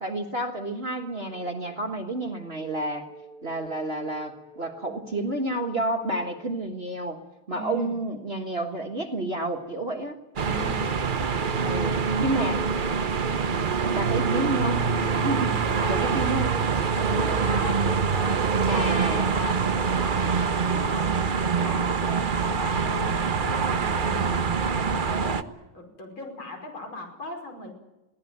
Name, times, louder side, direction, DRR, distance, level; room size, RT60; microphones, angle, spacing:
voice 1, 0.0-3.1 3.4-7.2 7.5-10.2 11.6-12.6 13.8-15.6 15.9-16.6 17.2-17.4 18.7-19.3 24.0-24.5, right 2 dB, 30° right, 4 dB, 1.6 m, -30 dB
sound 1, 1.0-6.6, right 1 dB, 55° left, 5.8 m, -50 dB
voice 2, 7.5-8.0 10.4-11.0 15.6-16.0 17.0-18.9 19.3-24.2 24.6-25.5 25.7-27.7, left 2 dB, 75° left, 4 dB, 6.1 m, -38 dB
sound 2, 10.4-25.4, right 5 dB, 70° right, 0.4 m, -25 dB
23.0 x 17.5 x 9.3 m, 1.0 s
omnidirectional pair, 2.2 m